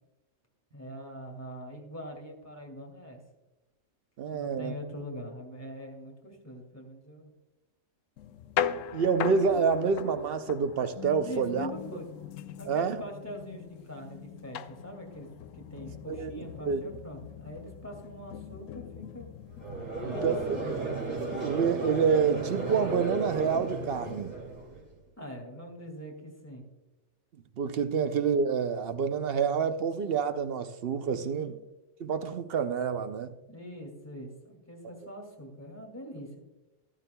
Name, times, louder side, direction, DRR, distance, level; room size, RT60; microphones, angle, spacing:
voice 1, 0.7-3.2 4.3-7.3 11.2-12.1 12.6-15.3 15.5-19.3 20.0-20.9 25.2-26.6 31.1-31.6 33.5-36.4, equal, 10° left, 2.2 m, -43 dB
voice 2, 4.2-4.7 8.9-11.7 12.6-13.0 16.1-16.8 20.0-20.4 21.4-24.3 27.6-31.5 32.0-33.3, right 6 dB, 60° right, 0.7 m, -28 dB
sound 1, 8.2-24.3, left 10 dB, 85° left, 1.0 m, -40 dB
Conversation / Crowd, 19.6-24.9, right 3 dB, 85° right, 3.1 m, -34 dB
13.5 x 11.5 x 2.2 m
omnidirectional pair, 1.3 m